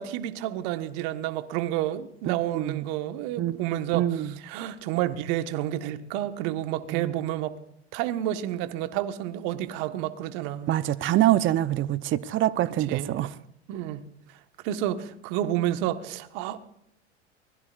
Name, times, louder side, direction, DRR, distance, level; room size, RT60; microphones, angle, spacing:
voice 1, 0.0-7.6 7.9-10.7 12.9-13.2 13.7-14.4 14.6-16.6, right 12 dB, 55° right, 1.5 m, -30 dB
voice 2, 2.3-2.8 3.4-3.6 3.9-4.3 6.9-7.1 10.7-13.3, right 13 dB, 35° right, 0.8 m, -25 dB
23.5 x 20.0 x 2.6 m
hypercardioid pair, 85°, 33 cm